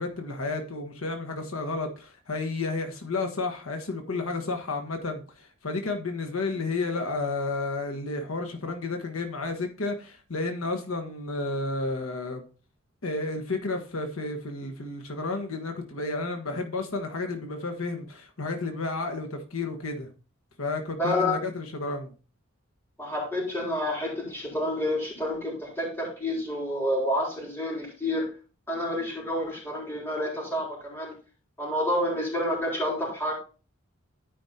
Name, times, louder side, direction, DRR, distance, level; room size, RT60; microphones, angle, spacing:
voice 1, 0.0-12.4 13.0-20.1 20.6-22.1, left 3 dB, 85° left, 1.3 m, -31 dB
voice 2, 21.0-21.3 23.0-28.3 28.7-31.1 31.6-33.3, left 1 dB, 10° left, 4.1 m, -29 dB
12.5 x 5.3 x 2.8 m
head